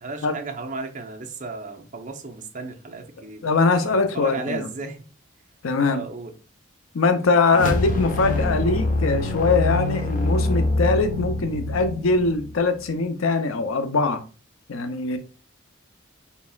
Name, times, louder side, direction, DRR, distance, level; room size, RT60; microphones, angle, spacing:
voice 1, 0.0-3.5 3.8-5.0 5.8-6.3, right 3 dB, 40° right, 0.7 m, -34 dB
voice 2, 3.4-4.7 5.6-6.0 6.9-14.2 14.7-15.2, left 3 dB, 80° left, 0.6 m, -22 dB
sound 1, 7.5-12.9, left 2 dB, 40° left, 0.9 m, -25 dB
4.1 x 4.1 x 2.3 m
head